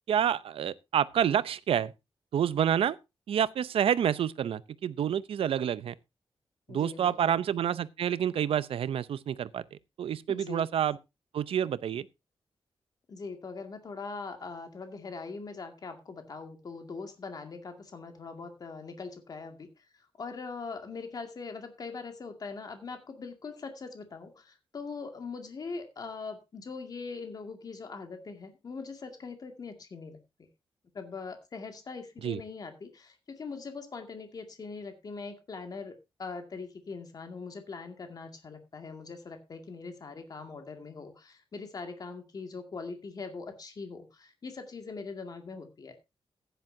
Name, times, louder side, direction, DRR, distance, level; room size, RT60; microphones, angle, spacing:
voice 1, 0.1-1.9 2.3-3.0 3.3-5.9 6.7-11.0 11.3-12.1 32.2-32.4, right 9 dB, 85° right, 0.6 m, -28 dB
voice 2, 6.7-7.4 10.3-10.7 13.1-30.2 30.9-46.0, left 4 dB, 45° left, 2.2 m, -42 dB
15.0 x 10.5 x 2.7 m
wide cardioid pair, 150°, 9 cm